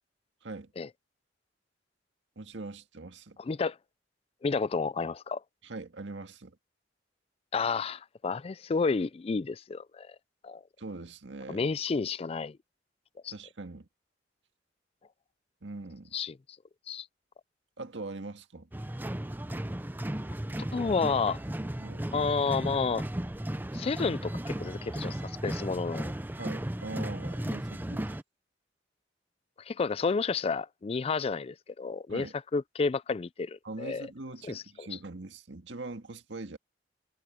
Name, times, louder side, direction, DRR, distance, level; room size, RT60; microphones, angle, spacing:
voice 1, 0.4-0.7 2.4-3.4 5.6-6.6 10.8-11.7 13.3-13.9 15.6-16.2 17.8-18.7 21.8-22.1 26.4-28.2 32.1-32.3 33.6-36.6, right 2 dB, 90° right, 1.8 m, -42 dB
voice 2, 3.4-3.8 4.4-5.4 7.5-10.1 10.4-10.6 11.5-12.6 13.2-13.3 16.1-16.3 16.9-17.1 20.7-21.4 22.1-23.0 23.7-26.1 29.7-32.3 32.5-34.1 34.4-34.9, left 4 dB, 35° left, 0.4 m, -30 dB
sound 1, 18.7-28.2, right 1 dB, 10° right, 0.6 m, -35 dB
head